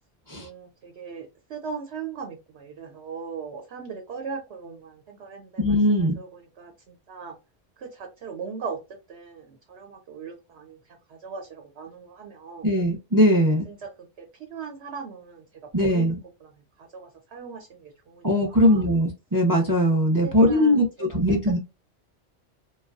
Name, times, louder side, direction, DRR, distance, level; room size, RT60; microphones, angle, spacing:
voice 1, 0.3-7.4 7.8-12.7 13.6-15.5 15.8-18.8 20.2-20.8, right 5 dB, 70° right, 0.9 m, -39 dB
voice 2, 5.6-6.2 12.6-13.7 15.7-16.2 18.2-21.6, equal, 30° right, 0.4 m, -20 dB
3.2 x 2.3 x 2.3 m
omnidirectional pair, 1.2 m